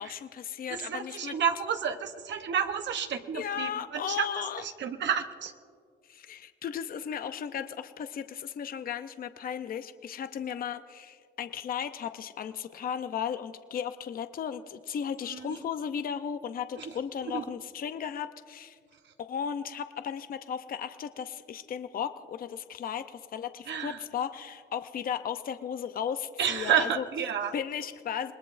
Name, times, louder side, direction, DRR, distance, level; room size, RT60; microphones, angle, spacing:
voice 1, 0.0-1.4 3.3-4.6 6.1-18.8 19.3-27.0 27.5-28.3, left 8 dB, 45° left, 11 dB, 0.6 m, -35 dB
voice 2, 0.7-5.5 15.3-15.6 16.8-16.9 17.3-17.5 23.7-24.0 26.4-27.5, right 8 dB, 65° right, 6 dB, 0.9 m, -30 dB
26.5 x 20.0 x 2.5 m, 2.1 s
cardioid pair, 90°, 20 cm